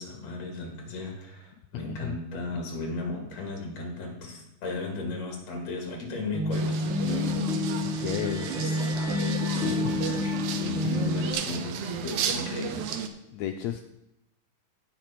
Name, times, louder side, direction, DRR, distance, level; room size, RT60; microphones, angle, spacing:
voice 1, 0.0-7.5 8.2-9.2 9.5-12.9, left 2 dB, 55° left, 2 dB, 3.1 m, -35 dB
sound 1, 6.1-11.3, left 3 dB, ahead, 2.3 m, -29 dB
sound 2, 6.5-13.1, right 7 dB, 85° right, 1.3 m, -34 dB
sound 3, 7.4-11.6, left 1 dB, 15° right, 0.9 m, -45 dB
voice 2, 7.8-8.5 9.7-9.8 10.8-11.0 13.3-13.8, left 10 dB, 85° left, 6 dB, 1.6 m, -33 dB
17.5 x 6.0 x 4.5 m, 0.88 s
omnidirectional pair, 3.7 m